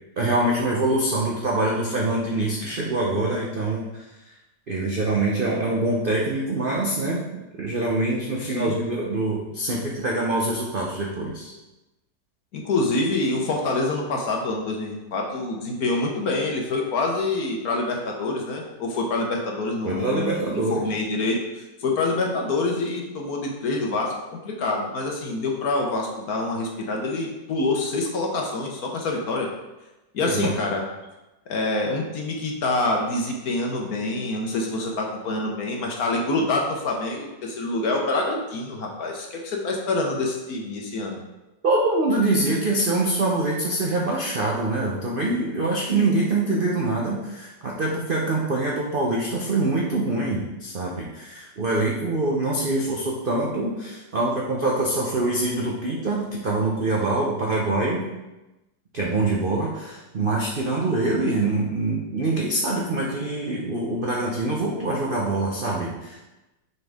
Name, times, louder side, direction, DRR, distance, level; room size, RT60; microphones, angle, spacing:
voice 1, 0.2-4.4 4.7-7.2 7.6-11.5 19.8-20.8 30.2-30.5 41.6-58.0 58.9-66.2, right 2 dB, 55° right, -3 dB, 0.5 m, -24 dB
voice 2, 12.5-29.5 30.1-30.8 31.5-41.2, left 2 dB, 60° left, 0 dB, 1.3 m, -26 dB
6.5 x 4.5 x 3.5 m, 1.0 s
omnidirectional pair, 2.0 m